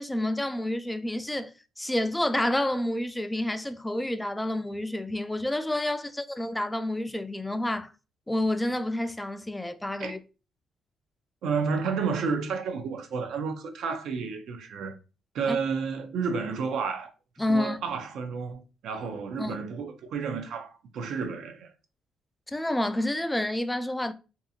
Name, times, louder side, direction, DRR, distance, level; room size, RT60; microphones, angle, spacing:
voice 1, 0.0-7.9 8.3-10.2 15.5-15.6 17.4-17.8 19.4-19.5 22.5-24.1, left 1 dB, 10° left, 0.3 m, -29 dB
voice 2, 11.4-15.0 15.3-17.1 17.5-21.7, right 5 dB, 75° right, 0.5 m, -31 dB
2.7 x 2.4 x 2.6 m
cardioid pair, 90°, 0 cm